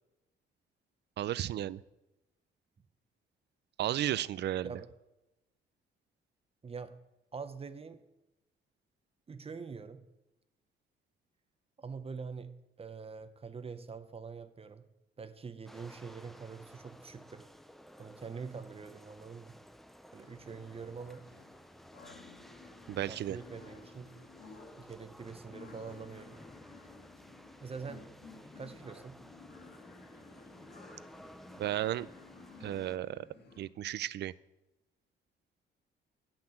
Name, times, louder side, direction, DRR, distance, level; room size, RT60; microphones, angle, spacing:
voice 1, 1.2-1.8 3.8-4.7 22.9-23.4 31.6-32.1 32.6-33.3 33.6-34.3, right 12 dB, 60° right, 19 dB, 0.4 m, -33 dB
voice 2, 6.6-7.0 7.3-8.0 9.3-10.0 11.8-12.5 12.8-14.9 15.2-17.5 18.0-19.5 20.1-21.3 23.1-24.1 24.8-26.4 27.6-28.0 28.6-29.2, right 5 dB, 30° right, 11 dB, 0.7 m, -44 dB
sound 1, 15.7-33.0, equal, ahead, 0.5 m, -55 dB
sound 2, 20.2-33.6, left 4 dB, 55° left, 1.7 m, -55 dB
8.7 x 5.8 x 7.6 m, 0.96 s
cardioid pair, 90°, 20 cm